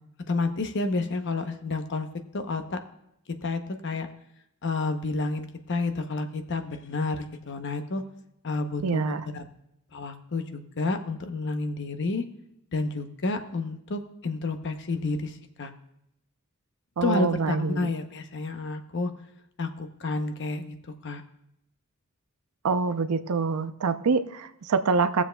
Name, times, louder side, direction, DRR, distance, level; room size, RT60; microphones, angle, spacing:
voice 1, 0.3-2.1 2.3-2.8 3.4-4.1 4.6-8.0 8.4-9.4 9.9-12.2 12.7-15.7 17.0-19.1 19.6-20.7 21.0-21.2, left 3 dB, 55° left, 7 dB, 0.8 m, -30 dB
voice 2, 8.8-9.2 17.0-17.9 22.6-25.2, right 4 dB, 90° right, 11 dB, 0.5 m, -25 dB
20.5 x 7.1 x 2.2 m, 0.78 s
head